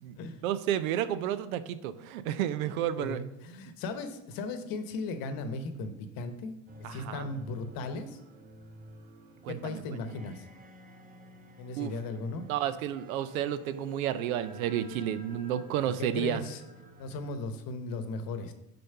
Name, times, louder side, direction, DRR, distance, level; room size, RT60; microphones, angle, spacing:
voice 1, 0.4-3.2 6.8-7.3 9.4-10.0 11.8-11.9 12.5-16.4, right 11 dB, 80° right, 14 dB, 0.6 m, -31 dB
voice 2, 3.0-6.5 6.9-8.2 9.5-10.5 11.6-12.5 15.8-16.6 17.0-18.5, left 3 dB, 55° left, 9 dB, 1.0 m, -37 dB
sound 1, 6.7-17.4, right 1 dB, 20° right, 0.9 m, -51 dB
6.4 x 4.4 x 5.6 m, 0.90 s
hypercardioid pair, 75°, 41 cm